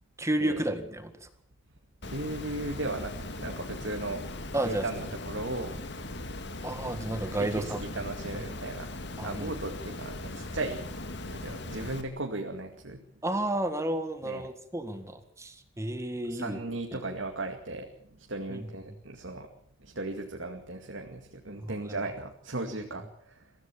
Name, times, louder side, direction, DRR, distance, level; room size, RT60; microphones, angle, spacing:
voice 1, 0.2-1.3 4.5-4.8 6.6-7.8 9.2-9.5 13.2-16.6 16.9-17.0 18.5-18.7 21.6-22.0 22.7-22.8, right 1 dB, 15° right, 8 dB, 1.8 m, -32 dB
Water, 2.0-12.0, left 2 dB, 60° left, 2.1 m, -39 dB
voice 2, 2.0-4.2 4.6-5.7 7.4-10.9 11.3-13.0 14.2-14.5 16.3-17.9 18.2-19.5 19.8-23.4, right 2 dB, 70° right, 3 dB, 2.3 m, -36 dB
23.5 x 15.5 x 7.3 m, 0.65 s
head